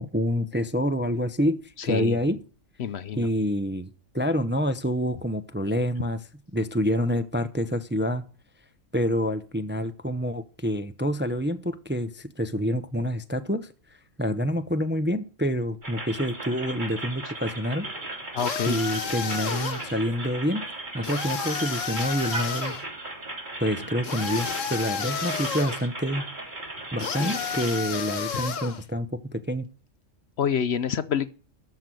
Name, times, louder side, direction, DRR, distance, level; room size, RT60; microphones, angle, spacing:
voice 1, 0.0-2.4 3.1-6.2 6.5-8.2 8.9-13.7 14.2-17.9 18.6-20.7 20.9-22.8 23.6-26.2 26.9-29.7, equal, 10° right, 11 dB, 0.6 m, -27 dB
voice 2, 2.8-3.3 18.3-18.8 27.0-27.3 30.4-31.3, left 8 dB, 60° left, 15 dB, 0.9 m, -27 dB
sound 1, 15.8-27.8, right 2 dB, 35° right, 3.2 m, -36 dB
sound 2, 18.4-19.9 21.0-22.8 24.0-25.8 27.0-28.8, left 6 dB, 75° left, 1.6 m, -31 dB
13.0 x 6.0 x 7.8 m, 0.40 s
omnidirectional pair, 1.3 m